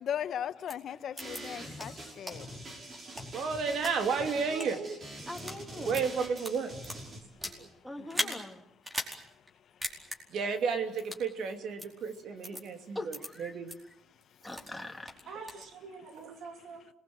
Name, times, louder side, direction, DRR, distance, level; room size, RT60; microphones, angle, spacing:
voice 1, 0.0-2.5 8.0-8.4, left 9 dB, 65° left, 1.2 m, -38 dB
sound 1, 0.7-0.8 1.2-1.4 1.8-1.9 2.3-2.4 2.9-3.9 4.5-4.7 5.2-5.6 5.9-7.6 8.1-8.4 8.8-9.2 9.5-9.6 9.8-10.2 11.0-11.3 11.8-11.9 12.4-12.6 13.1-13.3 13.7-13.8 14.2-14.7 15.1-15.6, equal, 15° right, 4.6 m, -37 dB
sound 2, 1.2-7.2, right 1 dB, 40° right, 6.5 m, -45 dB
voice 2, 3.1-5.3 5.8-6.7 7.1-7.7 10.3-13.7 15.3-16.9, right 5 dB, 70° right, 2.8 m, -34 dB
voice 3, 5.3-6.0 7.8-8.6 12.9-13.5 14.4-15.1, left 1 dB, 5° left, 3.0 m, -42 dB
27.0 x 20.5 x 7.9 m
cardioid pair, 90°, 0 cm